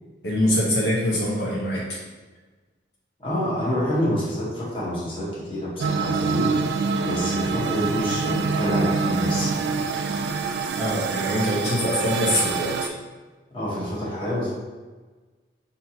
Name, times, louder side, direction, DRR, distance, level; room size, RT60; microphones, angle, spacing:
voice 1, 0.2-2.0 10.7-12.9, left 1 dB, 65° left, -5 dB, 0.9 m, -24 dB
voice 2, 3.2-6.6 7.0-9.7 13.5-14.5, equal, 30° left, -7 dB, 1.2 m, -27 dB
sound 1, 5.8-12.9, right 4 dB, 75° right, 0.3 m, -25 dB
5.6 x 2.7 x 2.8 m, 1.3 s
head